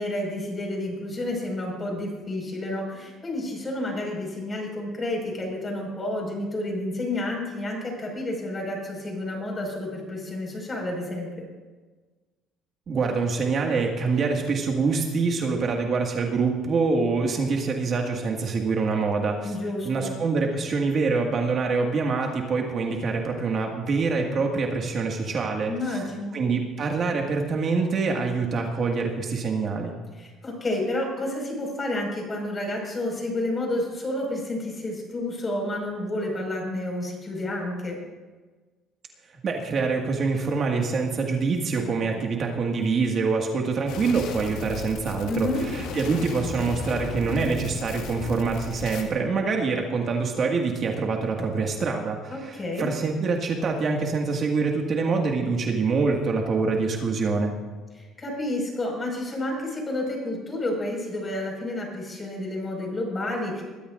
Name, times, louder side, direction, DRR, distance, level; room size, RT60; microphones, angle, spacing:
voice 1, 0.0-11.5 19.4-20.1 25.7-26.4 30.2-38.0 45.3-45.6 52.3-52.9 58.0-63.6, left 1 dB, 25° left, 1 dB, 5.3 m, -30 dB
voice 2, 12.9-19.6 19.8-26.0 26.3-30.0 39.4-57.5, right 4 dB, 45° right, 1 dB, 1.9 m, -25 dB
sound 1, 43.9-49.0, left 4 dB, 80° left, 1.9 m, -35 dB
21.5 x 13.5 x 2.6 m, 1.3 s
cardioid pair, 105°, 0 cm